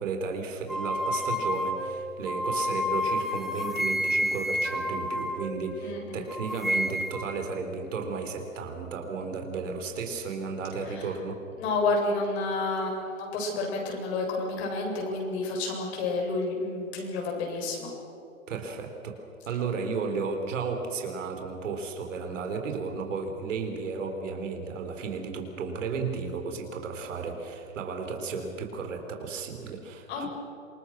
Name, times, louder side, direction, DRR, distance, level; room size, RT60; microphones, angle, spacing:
voice 1, 0.0-11.4 18.5-19.2 19.5-30.3, right 4 dB, 65° right, 4 dB, 4.3 m, -34 dB
sound 1, 0.7-6.0 6.3-7.4, left 1 dB, ahead, 1.9 m, -30 dB
voice 2, 5.8-6.2 10.9-11.1 11.6-17.9 30.1-30.3, left 3 dB, 55° left, 0 dB, 7.9 m, -30 dB
27.5 x 21.5 x 6.4 m, 2.6 s
hypercardioid pair, 120°, 40 cm